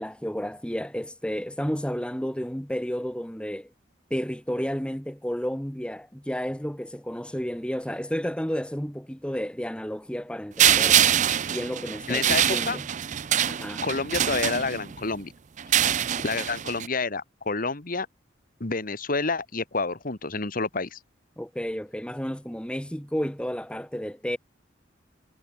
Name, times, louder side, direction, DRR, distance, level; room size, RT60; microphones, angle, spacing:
voice 1, 0.0-3.7 4.1-11.0 11.5-12.9 13.5-13.8 21.4-24.4, equal, 5° left, 1.8 m, -31 dB
sound 1, 10.6-15.0 15.6-16.9, right 10 dB, 40° right, 0.5 m, -24 dB
voice 2, 12.1-12.8 13.8-15.3 16.2-18.1 18.6-21.0, left 3 dB, 50° left, 1.8 m, -29 dB
head